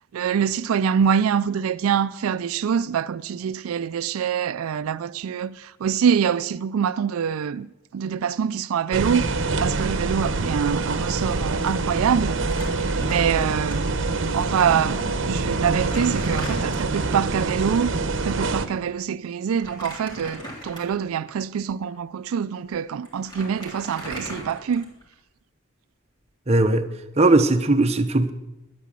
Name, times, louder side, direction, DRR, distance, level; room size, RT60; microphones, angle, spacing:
voice 1, 0.1-7.7 7.9-9.3 9.6-12.4 13.0-13.8 14.3-17.9 18.2-24.8, right 7 dB, 90° right, 0.4 m, -25 dB
sound 1, 8.9-18.7, right 3 dB, 60° right, 0.9 m, -25 dB
Crumpling crinkling, 12.4-13.7 14.0-14.1 15.0-15.1 15.5-17.3 19.5-21.1 21.7-21.8 22.7-22.8 23.0-25.1, equal, 20° left, 3.4 m, -38 dB
voice 2, 26.5-26.9 27.2-28.3, right 2 dB, 30° right, 0.8 m, -18 dB
12.0 x 9.4 x 7.5 m
head